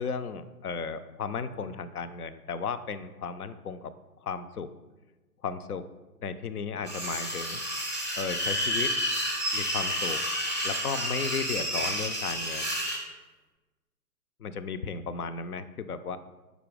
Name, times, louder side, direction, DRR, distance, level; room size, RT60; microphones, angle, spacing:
voice 1, 0.0-3.9 4.2-4.7 5.4-5.9 6.2-7.6 8.2-8.9 9.5-10.2 10.6-12.8 14.4-16.2, left 5 dB, 70° left, 12 dB, 0.6 m, -34 dB
sound 1, 6.9-13.0, equal, 10° left, 0.5 m, -30 dB
5.0 x 4.3 x 4.9 m, 1.2 s
figure-of-eight pair, 125°, 46 cm